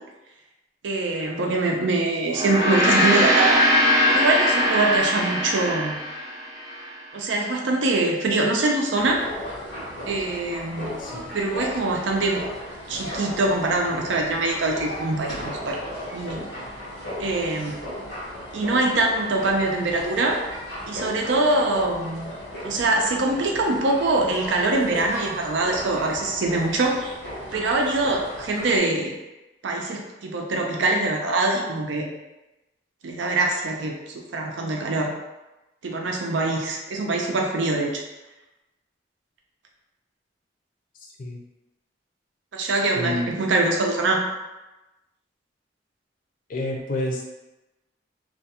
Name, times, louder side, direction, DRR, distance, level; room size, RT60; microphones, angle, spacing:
voice 1, 0.8-3.6 4.1-6.0 7.1-9.2 10.0-11.0 11.3-12.4 12.9-15.8 16.1-16.5 17.2-17.8 18.5-20.4 20.9-22.3 22.6-27.1 27.5-29.1 29.6-32.1 33.0-35.1 35.8-38.0 42.5-44.2, right 2 dB, 90° right, 1 dB, 0.5 m, -23 dB
Gong, 2.3-6.9, equal, 20° right, 0.4 m, -21 dB
sound 1, 8.9-28.8, equal, 85° left, 1.0 m, -36 dB
voice 2, 11.0-11.3 41.2-41.4 42.9-43.4 46.5-47.2, left 1 dB, 45° left, -1 dB, 0.5 m, -29 dB
2.4 x 2.2 x 2.8 m, 1.0 s
head